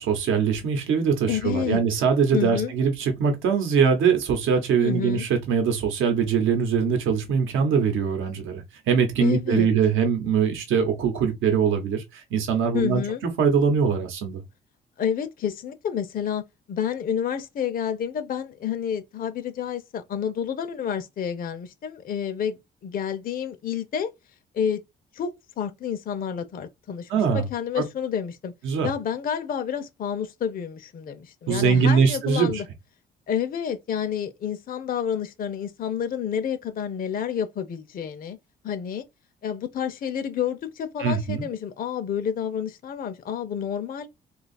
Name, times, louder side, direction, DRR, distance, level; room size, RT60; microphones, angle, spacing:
voice 1, 0.0-13.0 13.4-14.4 27.1-27.5 27.8-27.9 28.6-28.9 31.5-32.6 41.0-41.4, right 6 dB, 85° right, 0.9 m, -22 dB
voice 2, 1.3-1.8 2.3-2.7 4.8-5.3 9.2-9.7 12.7-13.2 15.0-24.1 24.5-24.8 25.1-28.5 28.8-32.7 33.3-38.4 38.6-39.0 39.4-44.1, left 8 dB, 45° left, 0.5 m, -29 dB
2.7 x 2.4 x 4.0 m
cardioid pair, 90°, 20 cm